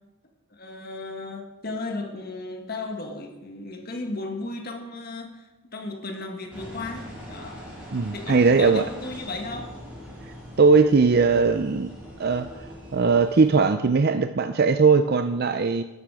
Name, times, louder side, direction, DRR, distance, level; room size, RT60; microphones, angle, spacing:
voice 1, 0.5-7.6 8.1-9.8, left 2 dB, 45° left, 3 dB, 1.7 m, -35 dB
Engine, 6.5-13.5, equal, 5° right, 4.8 m, -42 dB
voice 2, 7.9-8.8 10.6-11.9 12.2-12.5 12.9-15.8, right 4 dB, 50° right, 9 dB, 0.5 m, -19 dB
13.0 x 12.5 x 4.9 m, 1.0 s
head